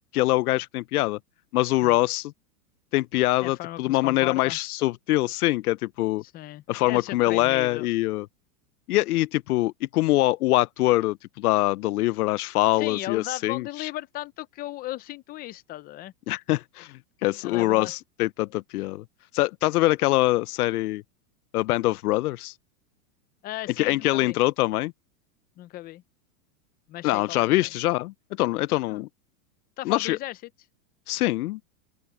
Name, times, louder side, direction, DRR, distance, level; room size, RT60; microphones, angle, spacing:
voice 1, 0.1-1.2 1.5-2.3 2.9-6.2 6.7-8.3 8.9-13.9 16.3-19.0 19.3-21.0 21.5-22.5 23.8-24.9 27.0-29.1 29.9-30.2 31.1-31.6, left 18 dB, 75° left, 0.6 m, -24 dB
voice 2, 3.4-4.6 6.2-7.9 12.8-16.1 17.4-17.9 23.4-24.4 25.6-26.0 26.9-27.7 28.9-29.0 29.8-30.4, left 15 dB, 20° left, 0.6 m, -36 dB
open air
supercardioid pair, 150°, 45 cm